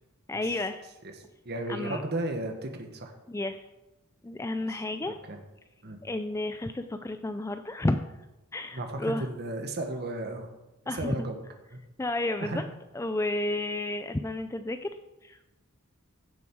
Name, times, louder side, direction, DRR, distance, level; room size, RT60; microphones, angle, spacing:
voice 1, 0.3-0.8 1.7-2.0 3.3-3.6 4.2-5.1 6.0-8.0 8.5-9.3 10.9-11.2 12.0-12.6 12.9-14.9 15.2-15.5, left 2 dB, 15° left, 9 dB, 0.4 m, -31 dB
voice 2, 1.4-3.1 4.7-5.4 5.8-6.0 8.7-10.5 10.8-11.4 11.7-11.8 12.4-12.6, right 1 dB, 50° right, 4 dB, 1.3 m, -34 dB
16.0 x 7.1 x 4.6 m, 1.0 s
head